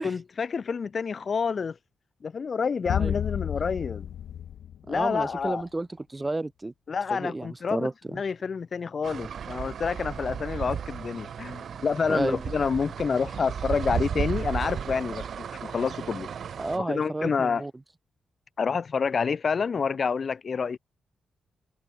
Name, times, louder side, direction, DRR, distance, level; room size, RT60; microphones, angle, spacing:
voice 1, 0.0-1.8 2.2-4.1 4.9-5.6 6.9-16.3 16.8-17.6 18.6-20.8, left 5 dB, 45° left, 5.5 m, -28 dB
sound 1, 2.9-5.5, left 10 dB, 80° left, 1.0 m, -31 dB
voice 2, 4.9-6.7 7.1-8.2 12.1-12.5 16.6-17.7, right 2 dB, 20° right, 5.2 m, -31 dB
sound 2, 9.0-16.8, right 7 dB, 65° right, 2.0 m, -34 dB
cardioid pair, 95°, 0 cm